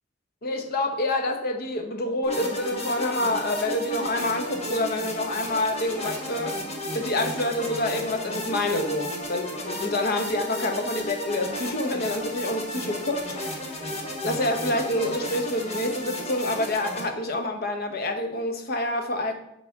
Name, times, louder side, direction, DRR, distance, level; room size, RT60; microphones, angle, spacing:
voice 1, 0.4-6.6 6.9-13.3 14.2-19.4, left 1 dB, 50° left, 6 dB, 0.9 m, -27 dB
sound 1, 2.2-17.0, equal, 35° left, 1.4 m, -33 dB
8.2 x 5.7 x 3.5 m, 0.81 s
head